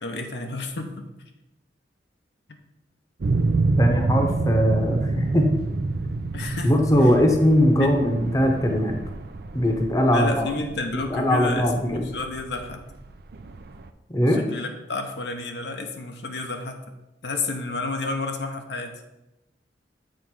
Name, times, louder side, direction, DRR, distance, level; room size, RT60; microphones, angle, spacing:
voice 1, 0.0-1.1 6.3-6.7 7.0-7.1 7.8-8.0 10.1-12.8 14.3-16.8 17.2-18.9, left 3 dB, 70° left, 4 dB, 0.8 m, -31 dB
sound 1, 3.2-13.9, right 3 dB, 60° right, 0.5 m, -28 dB
voice 2, 3.8-5.5 6.6-9.0 9.5-10.5 11.1-12.1 14.1-14.4, equal, 20° left, 3 dB, 0.9 m, -20 dB
7.6 x 3.8 x 6.1 m, 0.95 s
head